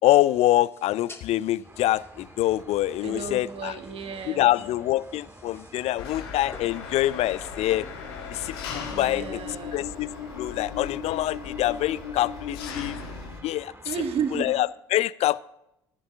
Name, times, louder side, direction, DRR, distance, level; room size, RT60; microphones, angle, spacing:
voice 1, 0.0-3.7 4.3-7.9 8.3-9.4 9.7-10.1 10.3-12.9 13.4-13.7 14.3-15.4, left 15 dB, 55° left, 0.4 m, -25 dB
sound 1, 0.7-9.5, left 2 dB, 20° left, 1.9 m, -52 dB
sound 2, 1.6-14.6, right 2 dB, 20° right, 1.9 m, -49 dB
voice 2, 3.0-4.5 8.9-9.8 13.8-14.5, right 6 dB, 50° right, 1.6 m, -32 dB
Engine, 6.0-13.4, left 6 dB, 80° left, 1.6 m, -37 dB
14.5 x 11.5 x 3.6 m
hypercardioid pair, 50°, 13 cm